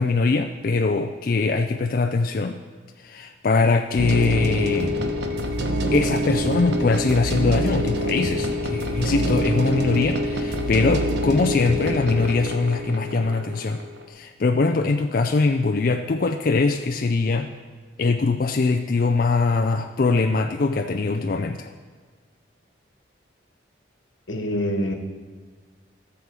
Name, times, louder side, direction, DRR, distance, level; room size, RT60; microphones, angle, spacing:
voice 1, 0.0-2.6 3.0-4.9 5.9-13.8 14.1-17.5 18.0-21.7, left 3 dB, 45° left, 5 dB, 0.4 m, -22 dB
sound 1, 4.0-14.1, equal, 65° right, 0.9 m, -26 dB
voice 2, 24.3-24.9, equal, 85° left, 5 dB, 1.2 m, -25 dB
13.5 x 7.0 x 4.7 m, 1.5 s
head